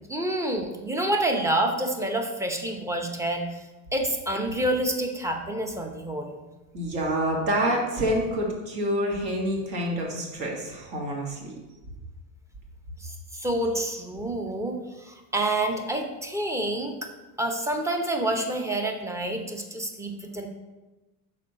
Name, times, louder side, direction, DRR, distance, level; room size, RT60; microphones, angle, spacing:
voice 1, 0.1-6.4 13.0-17.1 17.4-20.5, right 1 dB, 5° right, 4 dB, 0.7 m, -28 dB
voice 2, 6.7-11.6, equal, 55° right, -1 dB, 1.9 m, -27 dB
6.2 x 4.2 x 4.2 m, 1.1 s
supercardioid pair, 110°, 43 cm